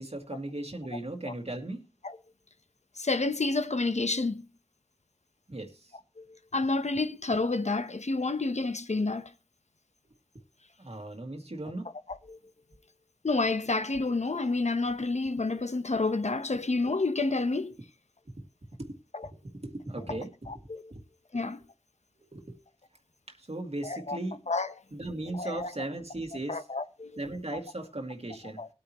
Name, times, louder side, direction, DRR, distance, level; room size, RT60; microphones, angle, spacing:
voice 1, 0.0-1.8 5.5-5.9 10.8-11.9 16.5-16.6 18.8-18.9 19.4-21.0 22.2-22.6 23.3-24.4 24.9-26.6 27.2-28.6, right 2 dB, 65° right, 2.0 m, -37 dB
voice 2, 3.0-4.5 6.2-9.3 12.3-12.4 13.2-17.8 19.1-19.3 20.1-20.2 20.5-20.9 21.3-21.6 23.8-24.2 24.5-24.7 25.3-25.7 26.5-27.2 27.5-27.6 28.6-28.7, left 3 dB, 80° left, 0.9 m, -29 dB
20.0 x 8.7 x 3.0 m
wide cardioid pair, 45°, 12 cm